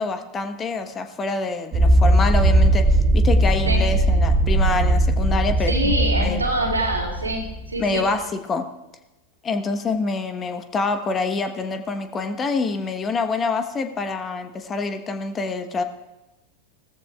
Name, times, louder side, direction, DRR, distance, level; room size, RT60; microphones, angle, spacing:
voice 1, 0.0-2.9 3.1-5.9 6.2-6.4 7.8-8.7 9.4-15.8, left 3 dB, 25° left, 7 dB, 1.2 m, -26 dB
sound 1, 1.7-7.9, right 1 dB, 30° right, 3.2 m, -19 dB
voice 2, 5.6-8.1, right 1 dB, 90° right, 0 dB, 2.3 m, -25 dB
18.0 x 14.5 x 2.4 m, 1.0 s
figure-of-eight pair, 90°, 0 cm